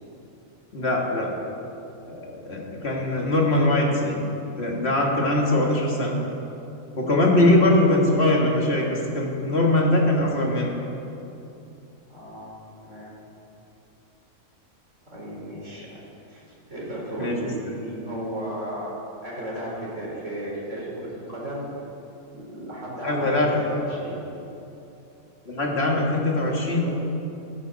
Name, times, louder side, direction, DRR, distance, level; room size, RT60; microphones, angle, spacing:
voice 1, 0.7-1.3 2.1-4.2 4.6-6.2 7.0-10.8 17.2-17.5 23.0-23.5 25.5-26.9, left 1 dB, 50° left, -1 dB, 2.2 m, -22 dB
voice 2, 12.1-13.1 15.1-16.0 16.3-18.9 19.2-21.7 22.3-24.2, right 1 dB, 60° right, -5 dB, 4.4 m, -34 dB
15.5 x 14.0 x 4.1 m, 2.8 s
omnidirectional pair, 1.4 m